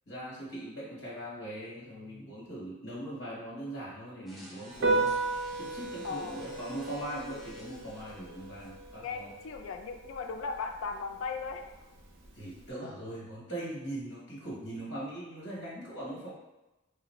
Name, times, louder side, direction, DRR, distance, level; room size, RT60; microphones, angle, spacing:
voice 1, 0.1-5.2 5.5-9.3 12.3-16.3, right 1 dB, 60° left, -6 dB, 1.1 m, -40 dB
sound 1, 4.3-9.3, right 1 dB, ahead, 0.4 m, -52 dB
Piano, 4.7-12.7, right 3 dB, 70° right, 0.6 m, -36 dB
voice 2, 6.0-6.4 9.0-11.6, left 5 dB, 85° left, 5 dB, 0.4 m, -37 dB
3.4 x 2.4 x 3.0 m, 1.0 s
head